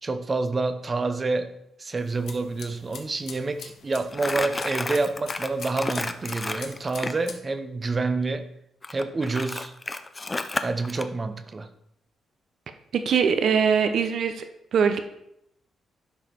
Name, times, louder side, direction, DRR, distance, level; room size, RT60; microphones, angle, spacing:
voice 1, 0.0-8.5 8.9-9.7 10.6-11.7, right 3 dB, 30° right, 10 dB, 0.7 m, -28 dB
sound 1, 2.0-7.4, left 6 dB, 80° left, 1.1 m, -44 dB
Crumpling crinkling, 4.1-7.2 8.8-11.1, left 2 dB, 20° left, 0.6 m, -31 dB
voice 2, 12.9-14.4 14.7-15.0, right 6 dB, 65° right, 8 dB, 0.8 m, -22 dB
11.5 x 5.1 x 4.5 m, 0.80 s
cardioid pair, 115°, 0 cm